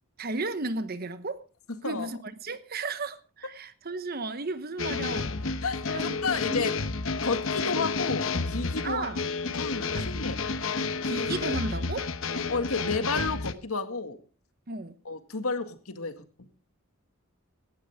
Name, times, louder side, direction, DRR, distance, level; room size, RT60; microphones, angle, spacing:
voice 1, 0.2-1.4 1.8-5.6 5.9-6.7 8.8-9.2 9.9-10.1 11.0-12.1 14.7-15.0, right 3 dB, 45° right, 1.0 m, -34 dB
voice 2, 1.7-2.1 5.6-6.7 7.2-9.1 9.6-10.4 12.5-14.2 15.1-16.2, left 4 dB, 80° left, 2.0 m, -31 dB
sound 1, 4.8-13.5, left 4 dB, 65° left, 1.0 m, -30 dB
17.0 x 13.0 x 3.6 m
head